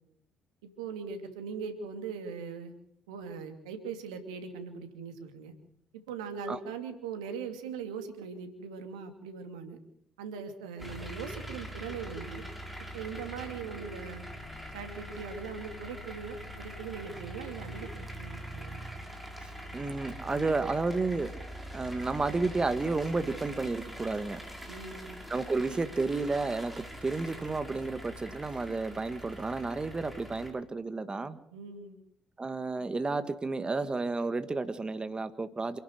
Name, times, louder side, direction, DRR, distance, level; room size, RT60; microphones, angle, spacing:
voice 1, 0.8-2.7 3.1-5.5 5.9-9.8 10.2-12.5 12.9-14.3 14.7-18.8 24.7-25.2 31.5-32.0, right 6 dB, 85° right, 7 dB, 2.6 m, -40 dB
sound 1, 10.8-30.5, equal, 5° right, 5.4 m, -43 dB
voice 2, 19.4-21.3 21.7-24.4 25.3-31.4 32.4-35.8, right 3 dB, 25° right, 11 dB, 1.7 m, -32 dB
27.5 x 12.0 x 8.0 m, 0.68 s
hypercardioid pair, 50°, 4 cm